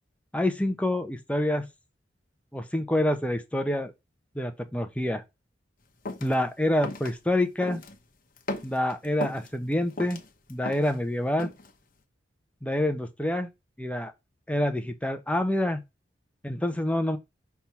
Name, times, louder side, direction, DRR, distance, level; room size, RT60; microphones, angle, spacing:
voice 1, 0.3-1.7 2.5-3.9 4.3-5.2 6.2-7.8 8.6-10.2 10.5-11.5 12.6-13.5 13.8-14.1 14.5-15.8 16.4-17.2, left 1 dB, 5° left, 0.7 m, -27 dB
sound 1, 6.0-6.3 6.8-7.1 7.6-8.0 8.4-9.5 9.9-11.0 11.4-11.7, left 2 dB, 45° left, 1.0 m, -36 dB
5.9 x 3.5 x 5.7 m
head